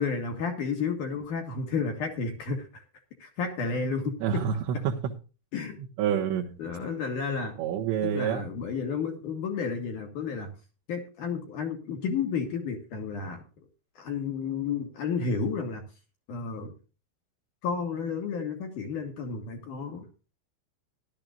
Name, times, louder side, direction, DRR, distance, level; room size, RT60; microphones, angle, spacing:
voice 1, 0.0-2.8 3.2-4.4 5.5-5.8 6.6-7.6 8.0-10.5 10.9-13.4 14.0-15.8 16.3-16.7 17.6-20.1, left 5 dB, 60° left, 4 dB, 2.4 m, -31 dB
voice 2, 4.2-4.5 4.8-5.1 6.0-6.6 7.6-8.4, right 9 dB, 75° right, -2 dB, 3.1 m, -27 dB
17.0 x 12.0 x 2.4 m, 0.33 s
omnidirectional pair, 5.5 m